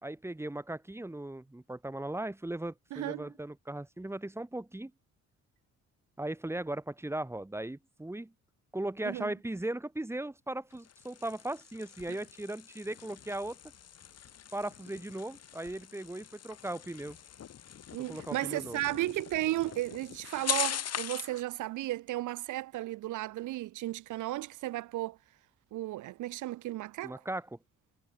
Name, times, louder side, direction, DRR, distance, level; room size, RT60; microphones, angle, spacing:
voice 1, 0.0-4.9 6.2-8.3 8.7-13.6 14.5-17.2 18.1-18.8 27.0-27.6, right 1 dB, 10° right, 2.6 m, -38 dB
voice 2, 2.9-3.3 9.0-9.3 12.1-12.2 17.9-25.2 25.7-27.2, right 16 dB, 80° right, 0.8 m, -34 dB
sound 1, 10.7-21.4, left 9 dB, 55° left, 2.6 m, -41 dB
cardioid pair, 90°, 30 cm